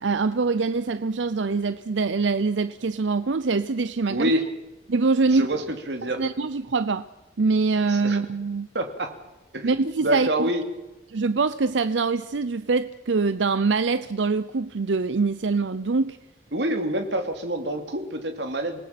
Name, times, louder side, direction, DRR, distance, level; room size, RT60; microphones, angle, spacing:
voice 1, 0.0-4.3 4.9-5.5 6.0-7.0 7.4-8.7 9.6-10.5 11.1-16.2, right 4 dB, 90° right, 0.6 m, -24 dB
voice 2, 4.1-4.5 5.3-6.2 7.9-8.2 8.7-9.1 9.5-9.7 10.0-10.6 16.5-18.8, right 1 dB, 75° right, 2.8 m, -27 dB
27.5 x 19.5 x 5.9 m
head